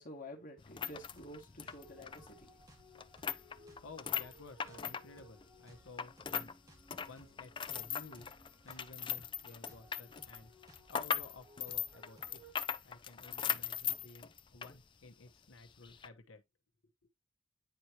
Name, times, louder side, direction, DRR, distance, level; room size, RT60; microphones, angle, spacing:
voice 1, 0.0-2.5, left 1 dB, 40° left, 1.8 m, -50 dB
sound 1, 0.6-6.5 6.8-14.8 15.1-15.2 15.8-16.1, left 8 dB, 25° left, 0.4 m, -39 dB
sound 2, 1.1-12.5, right 1 dB, 15° right, 1.7 m, -61 dB
voice 2, 3.5-6.5 7.1-10.5 10.9-12.4 12.8-16.4 17.0-17.1, left 3 dB, 90° left, 1.0 m, -54 dB
9.3 x 4.5 x 2.9 m
head